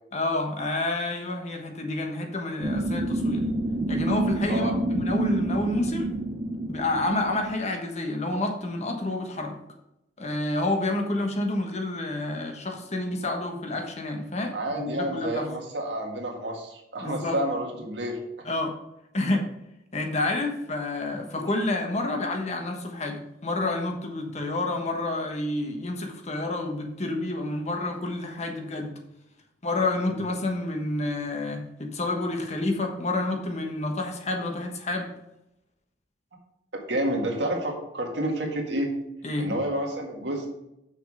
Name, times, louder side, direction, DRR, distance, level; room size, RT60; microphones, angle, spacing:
voice 1, 0.1-3.5 3.9-6.1 6.7-9.6 10.2-15.5 17.0-17.4 18.4-18.7 19.1-19.5 19.9-28.9 29.6-35.1 39.2-39.5, left 2 dB, 40° left, 3 dB, 1.2 m, -29 dB
sound 1, 2.6-7.6, right 2 dB, 35° right, 0.6 m, -28 dB
voice 2, 14.5-18.2 36.9-38.9 39.4-40.5, right 1 dB, 70° right, 1 dB, 1.8 m, -29 dB
6.5 x 6.3 x 4.9 m, 0.85 s
head